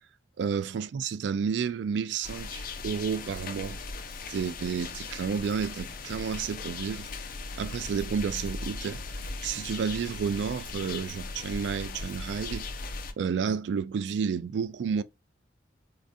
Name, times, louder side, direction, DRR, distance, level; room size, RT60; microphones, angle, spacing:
voice 1, 0.4-3.8 4.3-7.1 7.6-9.0 9.4-12.6 13.2-15.0, right 6 dB, 70° right, 0.3 m, -31 dB
sound 1, 2.2-13.1, left 3 dB, 50° left, 0.5 m, -38 dB
4.1 x 2.4 x 2.6 m
head